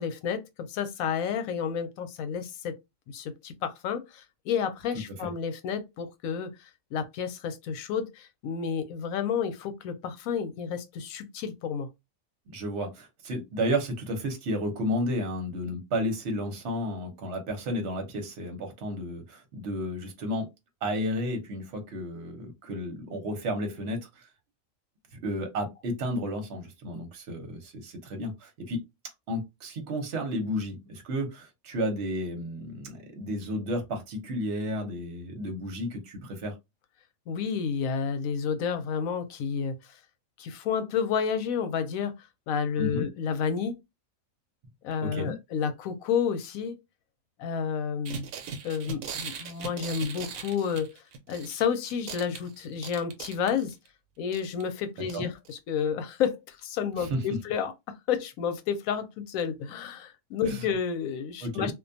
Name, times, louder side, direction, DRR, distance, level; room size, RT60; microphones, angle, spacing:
voice 1, 0.0-2.8 3.1-11.9 37.3-39.7 40.4-42.1 42.5-43.8 44.8-46.8 47.4-48.3 48.6-50.9 51.3-53.8 54.2-61.7, left 7 dB, 85° left, 1.0 m, -30 dB
voice 2, 12.5-20.5 20.8-24.2 25.2-28.8 29.3-36.5 42.8-43.1 45.0-45.4 55.1-55.3 57.0-57.2 60.4-60.6 61.4-61.7, equal, 55° right, 1.0 m, -32 dB
sound 1, 48.1-51.7 51.9-53.9 54.3-54.6 55.1-55.2 55.5-55.6, right 6 dB, 80° right, 1.0 m, -39 dB
2.4 x 2.2 x 2.5 m
omnidirectional pair, 1.4 m